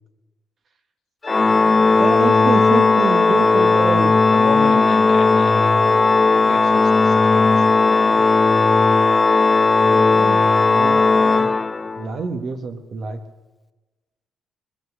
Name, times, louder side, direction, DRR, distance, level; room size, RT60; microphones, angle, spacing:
Organ, 1.2-12.1, left 3 dB, 25° left, 0.5 m, -16 dB
voice 1, 1.9-4.2 9.8-11.5 12.0-13.2, right 5 dB, 50° right, 6 dB, 1.5 m, -27 dB
voice 2, 4.3-8.2, left 7 dB, 80° left, 3 dB, 1.7 m, -32 dB
20.5 x 11.0 x 6.3 m, 1.2 s
cardioid pair, 90°, 0 cm